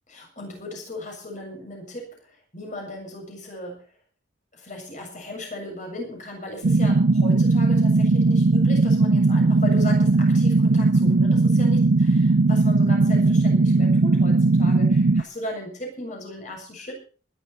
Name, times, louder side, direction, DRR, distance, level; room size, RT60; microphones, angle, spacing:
voice 1, 0.1-3.8 4.5-16.9, left 1 dB, 40° left, 2 dB, 7.2 m, -37 dB
sound 1, 6.6-15.2, right 3 dB, 70° right, 0.6 m, -18 dB
20.5 x 11.5 x 4.3 m, 0.38 s
head